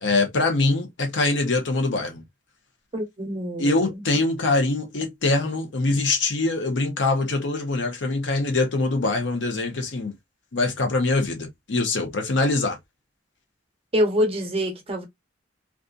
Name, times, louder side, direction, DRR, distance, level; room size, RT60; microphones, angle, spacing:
voice 1, 0.0-2.2 3.6-10.1 10.5-12.8, left 2 dB, 70° left, 0.7 m, -23 dB
voice 2, 2.9-4.0 13.9-15.0, equal, 30° right, 0.8 m, -25 dB
2.5 x 2.4 x 2.3 m
head